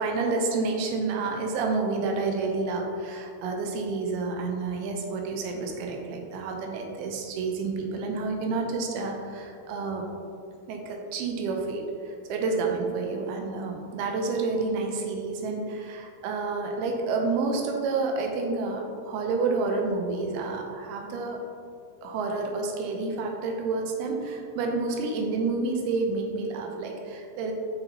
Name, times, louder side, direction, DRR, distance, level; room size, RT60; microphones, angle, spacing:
voice 1, 0.0-10.1 10.7-21.4 22.0-27.5, right 3 dB, 85° right, 2 dB, 2.6 m, -29 dB
7.2 x 5.8 x 2.8 m, 2.4 s
omnidirectional pair, 4.5 m